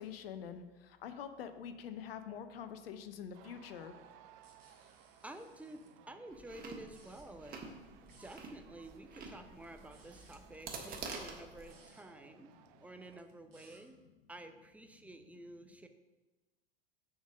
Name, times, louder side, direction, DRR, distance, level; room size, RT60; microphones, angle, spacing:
voice 1, 0.0-4.0 8.1-8.2, left 8 dB, 70° left, 10 dB, 0.7 m, -45 dB
sound 1, 3.3-13.2, right 10 dB, 50° right, 0.6 m, -62 dB
sound 2, 4.4-5.9 6.8-7.2 8.1-8.4 9.6-10.4 11.6-12.0 13.1-13.8, right 3 dB, 80° right, 1.9 m, -64 dB
voice 2, 5.2-7.7 8.2-12.5 12.8-14.0 14.3-15.9, right 1 dB, 5° right, 6 dB, 0.5 m, -51 dB
Chewing mastication, 6.3-11.7, right 4 dB, 30° right, 1.4 m, -48 dB
7.2 x 3.7 x 6.0 m, 1.1 s
hypercardioid pair, 85°, 30 cm